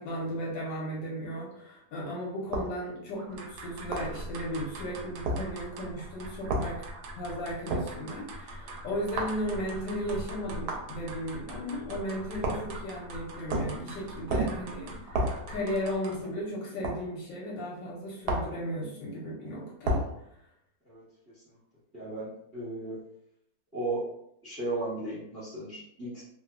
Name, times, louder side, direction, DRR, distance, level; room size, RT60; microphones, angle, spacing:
voice 1, 0.0-6.8 7.2-20.0, equal, 70° left, -4 dB, 1.3 m, -35 dB
sound 1, 2.5-2.7 3.9-4.1 5.3-5.4 6.5-6.7 7.7-7.9 9.2-9.4 10.7-10.9 12.4-12.7 13.5-13.8 14.3-14.6 15.1-15.4 16.8-17.0 18.3-18.6 19.8-20.1, right 1 dB, 75° right, 0.9 m, -29 dB
sound 2, 3.2-16.4, right 1 dB, 90° right, 1.4 m, -43 dB
voice 2, 21.9-23.0 23.7-24.1 24.4-26.2, right 2 dB, 10° right, -9 dB, 0.7 m, -35 dB
3.3 x 2.0 x 2.4 m, 0.75 s
omnidirectional pair, 2.2 m